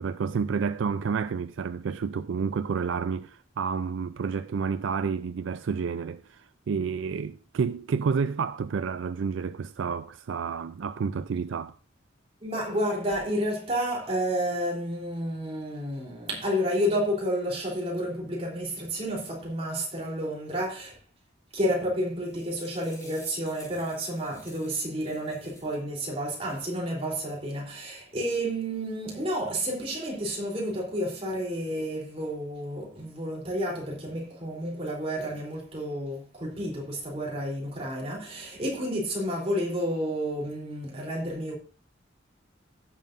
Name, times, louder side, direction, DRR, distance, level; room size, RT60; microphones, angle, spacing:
voice 1, 0.0-11.7, right 5 dB, 85° right, 0.4 m, -30 dB
voice 2, 12.4-21.0 21.5-41.5, equal, 30° right, 3.4 m, -30 dB
sound 1, 22.0-25.8 26.2-26.8, left 1 dB, 20° left, 5.1 m, -52 dB
16.0 x 7.3 x 2.6 m
head